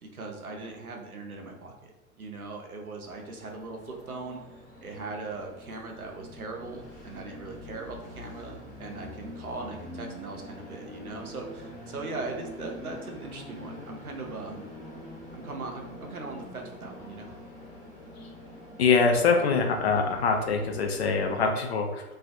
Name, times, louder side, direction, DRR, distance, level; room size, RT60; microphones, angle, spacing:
voice 1, 0.0-1.9 2.2-4.4 4.8-14.7 15.3-17.3, right 3 dB, 85° right, 1 dB, 0.6 m, -39 dB
Train, 3.0-21.5, left 1 dB, 30° left, 1.1 m, -45 dB
voice 2, 18.8-22.0, left 4 dB, 50° left, 3 dB, 0.4 m, -24 dB
2.4 x 2.3 x 2.4 m, 1.0 s
figure-of-eight pair, 105°, 42 cm